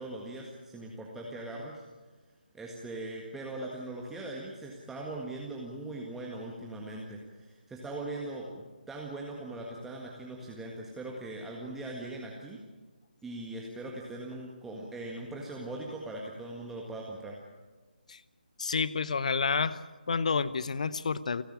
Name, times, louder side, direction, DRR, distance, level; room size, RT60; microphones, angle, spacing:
voice 1, 0.0-1.8 2.5-12.6 13.2-17.4, right 2 dB, 5° right, -2 dB, 1.7 m, -40 dB
voice 2, 18.6-19.8 20.1-21.4, left 5 dB, 45° left, 17 dB, 0.9 m, -29 dB
29.0 x 11.5 x 9.0 m, 1.3 s
figure-of-eight pair, 150°, 5 cm